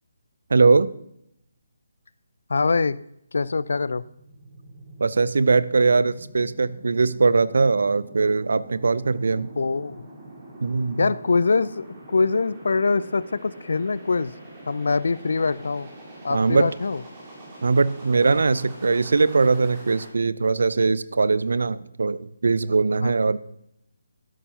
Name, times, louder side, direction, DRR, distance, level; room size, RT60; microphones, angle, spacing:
voice 1, 0.5-0.9 5.0-9.5 10.6-11.1 16.3-16.7 17.6-23.4, right 4 dB, 60° right, 17 dB, 0.5 m, -21 dB
voice 2, 2.5-3.0 3.3-4.0 9.6-10.0 11.0-14.3 14.7-15.9 16.2-17.0 23.0-23.1, left 4 dB, 60° left, 19 dB, 0.3 m, -23 dB
sound 1, 3.6-20.1, right 1 dB, 25° right, 3.6 m, -44 dB
12.5 x 11.0 x 2.7 m, 0.77 s
figure-of-eight pair, 145°, 0 cm